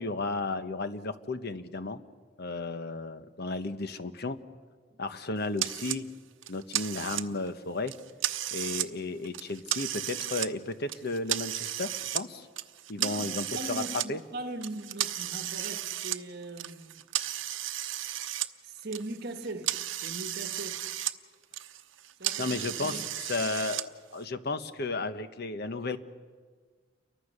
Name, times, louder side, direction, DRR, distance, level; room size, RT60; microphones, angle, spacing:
voice 1, 0.0-2.0 2.4-4.4 5.0-6.1 6.5-7.9 8.5-12.5 12.9-13.8 14.1-14.2 22.4-23.0 23.3-26.0, left 3 dB, 60° left, 1.1 m, -34 dB
sound 1, 5.6-6.0 6.4-7.5 7.9-8.9 9.2-10.5 10.9-12.3 12.6-14.1 14.6-18.5 18.8-21.2 21.4-23.8, right 13 dB, 80° right, 0.9 m, -34 dB
voice 2, 13.0-17.0 18.6-20.8 22.2-23.1, right 2 dB, 60° right, 1.7 m, -40 dB
29.5 x 23.5 x 6.7 m
head